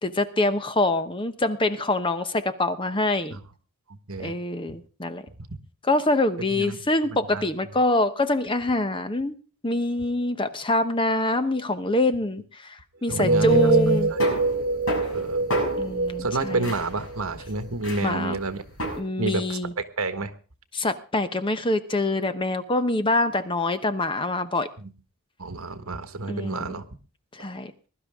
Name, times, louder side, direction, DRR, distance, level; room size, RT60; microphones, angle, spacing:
voice 1, 0.0-3.4 4.2-5.2 5.9-9.3 9.6-14.1 15.8-16.7 18.0-18.4 19.0-19.7 20.7-24.7 26.3-26.8 27.3-27.7, left 1 dB, 25° left, 10 dB, 0.9 m, -25 dB
voice 2, 3.9-4.3 4.7-4.8 5.5-5.6 6.5-6.8 7.3-7.5 13.1-13.7 14.1-14.2 15.1-15.5 16.2-18.6 19.2-20.3 24.8-24.9 25.4-26.8, right 3 dB, 70° right, 10 dB, 1.5 m, -30 dB
sound 1, 13.1-19.0, left 1 dB, 65° left, 6.5 m, -30 dB
sound 2, 13.1-17.7, right 3 dB, 45° right, 3.3 m, -25 dB
21.0 x 11.5 x 3.6 m, 0.35 s
head